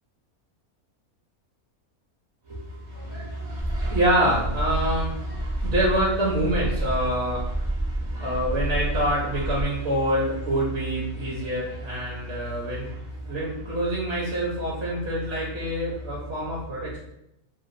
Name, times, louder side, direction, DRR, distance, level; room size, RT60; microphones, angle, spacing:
voice 1, 2.5-17.0, right 1 dB, 55° right, -5 dB, 0.9 m, -26 dB
sound 1, 3.6-9.6, right 1 dB, 15° right, 0.6 m, -29 dB
2.9 x 2.2 x 2.5 m, 0.81 s
omnidirectional pair, 1.6 m